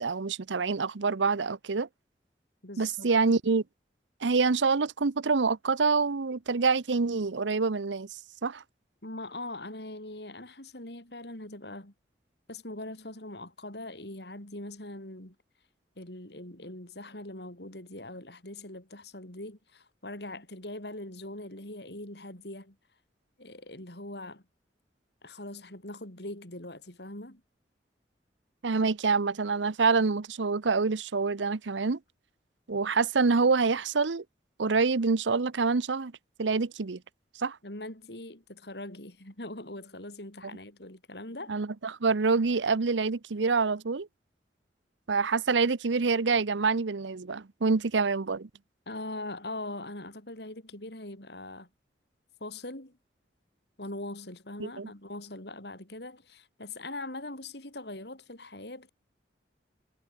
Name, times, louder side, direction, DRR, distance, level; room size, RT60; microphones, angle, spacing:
voice 1, 0.0-1.9 2.8-3.6 4.2-8.1 8.4-8.6 28.6-32.0 32.7-34.2 34.6-36.1 36.4-37.0 37.4-37.6 41.5-44.1 45.1-48.5 54.6-54.9, right 4 dB, 90° right, 0.8 m, -26 dB
voice 2, 2.6-3.1 9.0-11.9 12.5-15.3 16.0-22.8 23.4-24.4 25.2-27.4 37.6-41.5 48.9-51.7 52.4-53.0 53.8-58.9, left 2 dB, 65° left, 5.0 m, -41 dB
head